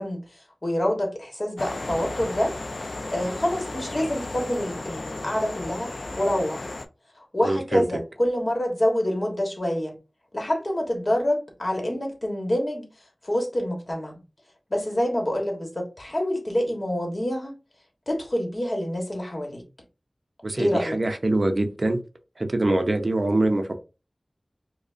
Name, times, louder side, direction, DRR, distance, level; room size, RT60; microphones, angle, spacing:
voice 1, 0.0-2.5 3.1-6.7 7.2-10.0 10.3-12.9 13.2-14.2 14.7-17.5 18.1-19.6 20.6-21.0, left 1 dB, 45° left, 1.2 m, -27 dB
sound 1, 1.6-6.8, left 2 dB, 70° left, 0.4 m, -34 dB
voice 2, 7.4-7.8 20.4-22.0 22.4-23.8, right 2 dB, 55° right, 0.5 m, -24 dB
5.0 x 2.1 x 2.5 m
wide cardioid pair, 60°, 0 cm